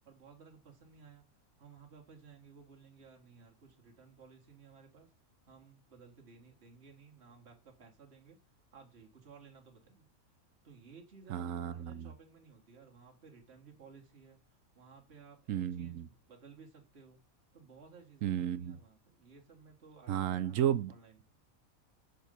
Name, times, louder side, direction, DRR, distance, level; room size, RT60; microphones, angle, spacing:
voice 1, 0.0-1.3 1.6-5.1 5.4-8.4 8.7-10.1 10.6-14.4 14.7-17.2 17.5-21.2, right 5 dB, 45° right, 1.9 m, -57 dB
voice 2, 11.3-12.1 15.5-16.1 18.2-18.8 20.1-20.9, right 10 dB, 70° right, 0.9 m, -33 dB
6.6 x 4.6 x 5.2 m
omnidirectional pair, 1.5 m